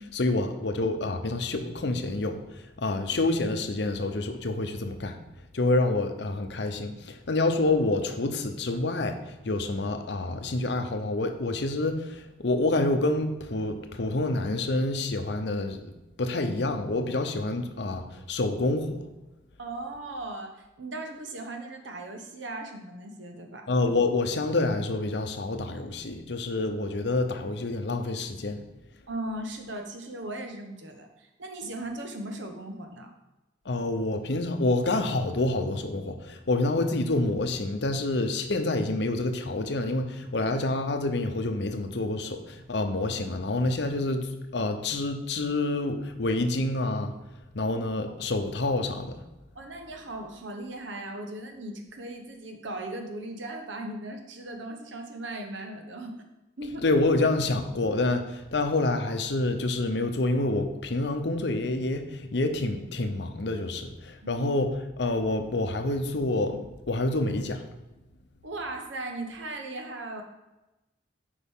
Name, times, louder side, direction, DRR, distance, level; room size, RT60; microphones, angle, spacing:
voice 1, 0.1-2.4 2.8-5.2 5.5-15.9 16.2-19.0 23.7-28.6 33.7-47.1 47.5-49.1 56.8-67.6, left 2 dB, 70° left, 7 dB, 0.7 m, -27 dB
voice 2, 19.6-23.7 29.1-33.1 48.0-48.1 49.5-56.2 56.6-56.8 64.2-64.5 68.4-70.2, right 2 dB, 85° right, 4 dB, 1.1 m, -38 dB
8.5 x 5.2 x 3.6 m, 1.0 s
head